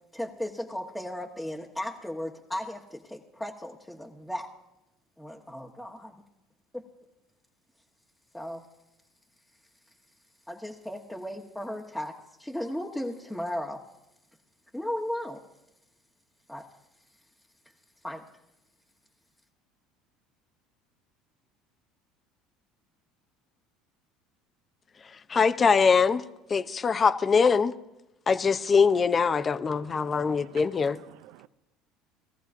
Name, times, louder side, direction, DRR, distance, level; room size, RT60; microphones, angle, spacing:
voice 1, 0.1-4.5 5.2-6.1 6.7-6.8 8.3-8.6 10.5-13.8 14.7-15.4 16.5-16.7 18.0-18.2, left 1 dB, 5° left, 1.2 m, -35 dB
voice 2, 25.3-26.2 26.5-27.7 28.3-31.0, left 5 dB, 30° left, 0.7 m, -22 dB
voice 3, 29.7-31.5, right 16 dB, 70° right, 0.5 m, -51 dB
20.0 x 14.0 x 2.6 m
supercardioid pair, 85°, 0 cm